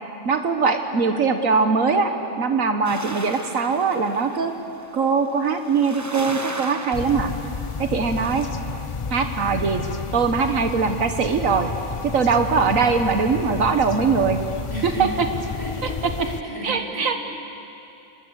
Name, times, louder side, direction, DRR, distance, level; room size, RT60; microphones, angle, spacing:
voice 1, 0.2-2.1 2.4-4.5 4.9-7.3 7.8-8.5 9.1-9.8 10.1-11.7 12.1-14.4 15.0-15.1 16.6-17.3, right 5 dB, 70° right, 6 dB, 1.6 m, -21 dB
sound 1, 2.8-5.0 5.5-7.6 8.0-8.5, right 1 dB, 15° right, 1.1 m, -36 dB
sound 2, 6.9-16.4, left 5 dB, 40° left, 0.4 m, -31 dB
voice 2, 14.7-15.2 15.5-17.1, right 1 dB, 15° left, -2 dB, 5.0 m, -33 dB
25.5 x 22.0 x 8.2 m, 2.7 s
omnidirectional pair, 1.4 m